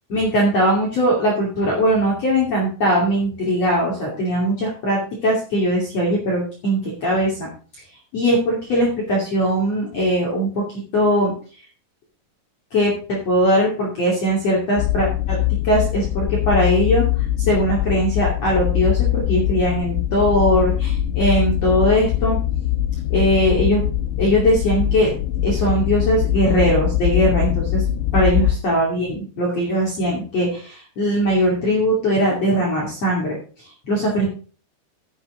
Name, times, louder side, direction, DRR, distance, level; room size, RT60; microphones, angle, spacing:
voice 1, 0.1-7.5 8.1-10.6 10.9-11.3 12.7-15.4 15.6-22.4 23.1-23.8 24.2-27.8 28.1-34.3, equal, 40° left, -3 dB, 3.3 m, -20 dB
sound 1, 14.8-28.5, left 12 dB, 85° left, 2.8 m, -22 dB
15.0 x 7.5 x 3.7 m, 0.38 s
omnidirectional pair, 5.0 m